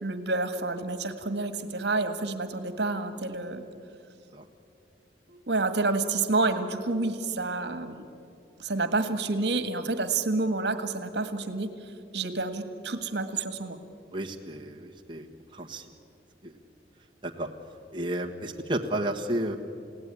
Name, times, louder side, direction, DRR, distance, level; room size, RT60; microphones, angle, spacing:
voice 1, 0.0-3.6 5.3-8.1 8.6-13.8, right 3 dB, 65° right, 9 dB, 1.7 m, -29 dB
voice 2, 14.1-15.8 16.4-16.6 17.2-17.5 17.9-19.6, right 1 dB, 25° right, 1 dB, 1.5 m, -32 dB
29.5 x 17.5 x 9.8 m, 2.6 s
head